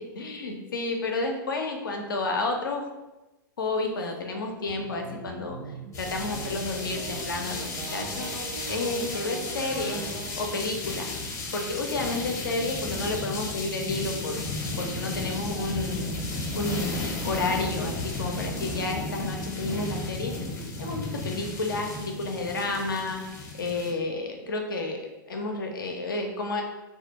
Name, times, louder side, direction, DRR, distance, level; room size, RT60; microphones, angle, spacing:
voice 1, 0.0-2.9 3.6-5.6 6.0-10.1 10.4-11.1 11.5-14.4 14.8-20.4 20.8-23.2 23.5-26.6, left 2 dB, 80° left, 3 dB, 0.5 m, -31 dB
sound 1, 4.7-10.3, right 4 dB, 55° right, 0.5 m, -39 dB
sound 2, 5.9-23.9, left 2 dB, 25° left, 0.6 m, -34 dB
2.3 x 2.1 x 2.9 m, 1.1 s
hypercardioid pair, 100°, 11 cm